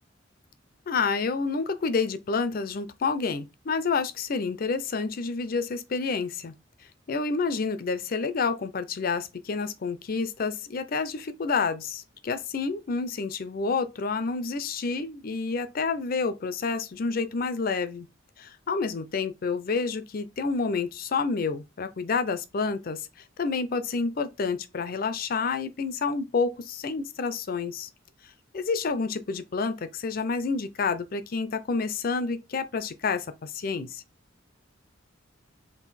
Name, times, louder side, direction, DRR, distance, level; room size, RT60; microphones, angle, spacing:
voice 1, 0.9-6.5 7.1-18.1 18.4-23.1 23.4-27.9 28.5-34.0, left 4 dB, 50° left, 0.5 m, -29 dB
3.8 x 2.5 x 4.1 m
head